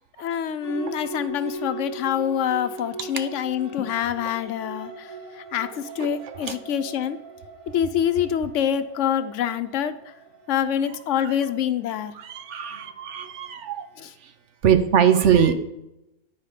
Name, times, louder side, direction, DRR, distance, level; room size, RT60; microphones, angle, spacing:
voice 1, 0.2-5.1 5.4-7.2 7.7-10.0 10.5-12.1 14.0-14.1, left 9 dB, 80° left, 12 dB, 1.0 m, -26 dB
sound 1, 0.6-12.5, right 3 dB, 50° right, 2.4 m, -40 dB
voice 2, 12.2-13.9 14.6-15.5, right 8 dB, 75° right, 9 dB, 1.1 m, -21 dB
10.5 x 4.7 x 4.9 m, 0.88 s
omnidirectional pair, 1.3 m